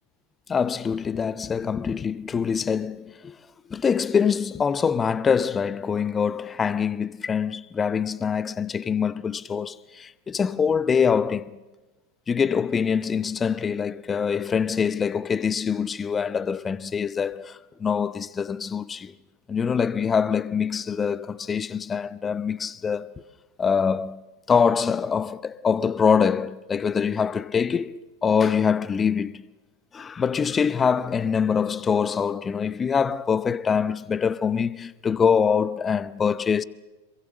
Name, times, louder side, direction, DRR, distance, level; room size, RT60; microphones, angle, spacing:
voice 1, 0.5-3.4 3.7-11.6 12.3-19.1 19.5-23.1 23.6-24.2 24.5-29.4 29.9-36.6, left 6 dB, 20° left, 0.8 m, -24 dB
26.5 x 23.5 x 6.6 m
figure-of-eight pair, 90°, 0 cm